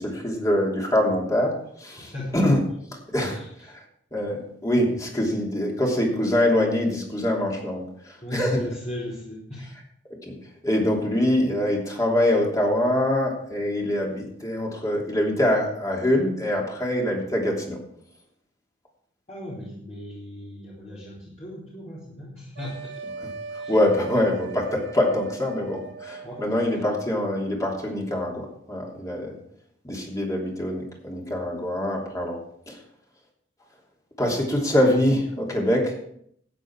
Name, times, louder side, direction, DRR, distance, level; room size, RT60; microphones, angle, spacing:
voice 1, 0.0-2.6 3.1-3.8 4.1-8.6 10.2-10.3 10.6-17.8 23.2-23.3 23.7-29.4 29.8-32.4 32.7-32.8 34.2-36.0, left 1 dB, 20° left, -1 dB, 3.1 m, -24 dB
voice 2, 2.0-2.4 3.3-3.5 8.2-9.7 19.3-22.9 23.5-23.7 26.2-26.4, left 1 dB, 35° left, -8 dB, 3.7 m, -36 dB
sound 1, 22.5-27.0, right 5 dB, 65° right, 1.5 m, -39 dB
13.5 x 9.4 x 4.7 m, 0.68 s
head